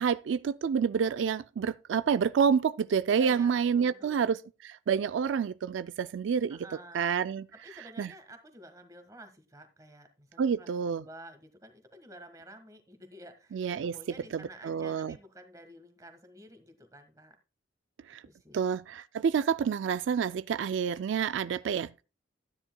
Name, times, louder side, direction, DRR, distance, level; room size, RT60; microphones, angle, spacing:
voice 1, 0.0-4.4 4.6-6.6 6.9-7.5 8.0-8.1 10.4-11.0 13.5-14.0 14.3-15.1 18.1-18.2 18.5-22.0, right 7 dB, 85° right, 0.3 m, -28 dB
voice 2, 3.1-4.4 6.5-7.1 7.5-17.4 18.2-18.7, right 1 dB, 20° right, 1.5 m, -51 dB
13.0 x 9.8 x 2.2 m
head